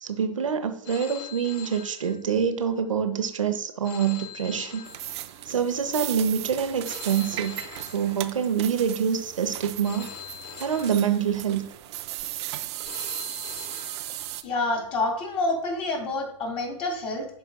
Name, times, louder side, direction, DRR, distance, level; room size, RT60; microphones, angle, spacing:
voice 1, 0.0-4.9 5.5-7.6 7.9-10.1 10.6-11.7, right 7 dB, 90° right, 8 dB, 0.8 m, -26 dB
Telephone, 0.8-2.7 3.8-5.7 6.8-8.7 9.8-11.7 12.8-14.7, left 9 dB, 50° left, 1.1 m, -43 dB
sound 1, 4.8-14.4, right 15 dB, 60° right, 0.5 m, -37 dB
voice 2, 14.4-17.3, left 2 dB, 35° left, 2 dB, 2.1 m, -28 dB
11.0 x 4.5 x 2.2 m, 0.64 s
hypercardioid pair, 105°, 16 cm